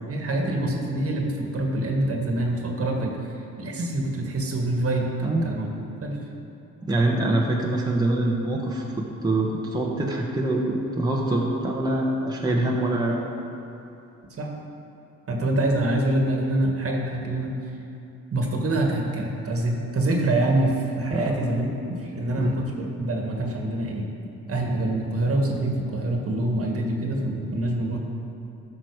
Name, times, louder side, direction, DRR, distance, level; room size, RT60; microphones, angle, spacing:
voice 1, 0.1-5.1 5.4-5.7 6.0-6.2 14.4-14.5 15.3-17.5 18.3-24.1 24.5-28.0, right 1 dB, 50° right, 1 dB, 1.8 m, -25 dB
voice 2, 5.2-5.5 6.8-13.2 21.1-21.3 22.4-22.5, right 1 dB, 15° right, -3 dB, 1.3 m, -24 dB
12.5 x 6.2 x 4.8 m, 2.8 s
cardioid pair, 90°, 30 cm